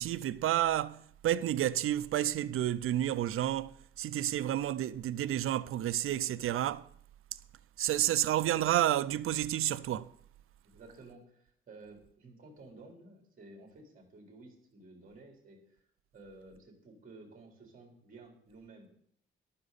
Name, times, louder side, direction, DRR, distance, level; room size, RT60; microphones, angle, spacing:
voice 1, 0.0-6.9 7.8-10.1, right 12 dB, 80° right, 0.5 m, -30 dB
voice 2, 10.6-15.8 16.1-18.9, right 2 dB, 40° right, 3.8 m, -54 dB
14.0 x 11.5 x 4.1 m
wide cardioid pair, 175°, 21 cm